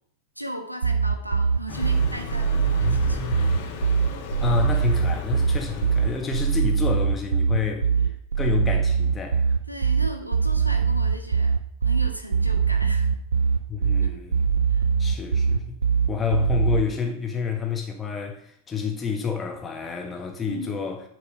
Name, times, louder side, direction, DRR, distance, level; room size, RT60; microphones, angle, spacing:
voice 1, 0.4-3.7 5.5-5.6 7.8-8.1 9.7-11.6 11.8-13.1 14.0-14.2 14.7-14.9 15.3-15.4 20.5-20.8, equal, 90° right, 1.1 m, -37 dB
sound 1, 0.8-16.8, right 6 dB, 70° right, 0.6 m, -22 dB
Car passing by, 1.7-7.2, left 5 dB, 50° left, 1.5 m, -36 dB
voice 2, 2.8-3.5 4.4-7.9 8.4-9.4 13.7-14.4 15.0-15.7 16.1-21.0, left 6 dB, 20° left, 1.6 m, -29 dB
10.0 x 4.9 x 4.8 m
figure-of-eight pair, 90°, 0 cm